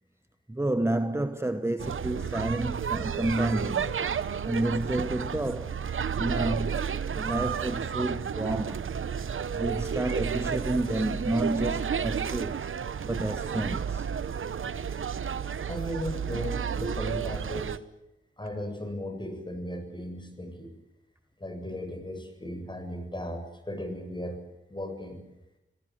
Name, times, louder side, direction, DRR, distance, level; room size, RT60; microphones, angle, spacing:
voice 1, 0.5-3.9 4.4-5.8 6.2-6.8 7.1-8.9 9.5-12.7 13.0-14.1, right 1 dB, 10° right, 1.1 m, -30 dB
sound 1, 1.8-17.8, right 7 dB, 80° right, 1.0 m, -31 dB
voice 2, 15.6-17.8 18.4-20.7 21.4-24.4 24.7-25.2, equal, 25° left, 7.5 m, -36 dB
26.5 x 18.0 x 9.4 m
cardioid pair, 65°, 21 cm